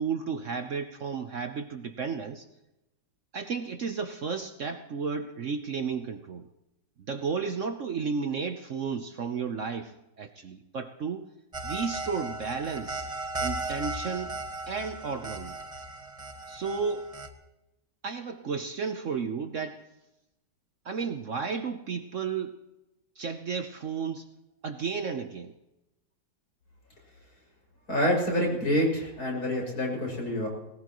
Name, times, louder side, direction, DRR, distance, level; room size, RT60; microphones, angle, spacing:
voice 1, 0.0-2.5 3.3-6.5 7.1-11.3 11.6-13.1 13.4-14.4 14.7-15.6 16.5-17.1 18.0-19.8 20.8-22.5 23.2-24.3 24.6-25.5, right 5 dB, 55° right, 7 dB, 1.0 m, -33 dB
sound 1, 11.5-17.3, right 2 dB, 20° right, 1.4 m, -36 dB
voice 2, 27.9-30.5, equal, 60° left, 0 dB, 6.8 m, -27 dB
20.0 x 19.5 x 3.1 m, 0.92 s
omnidirectional pair, 1.8 m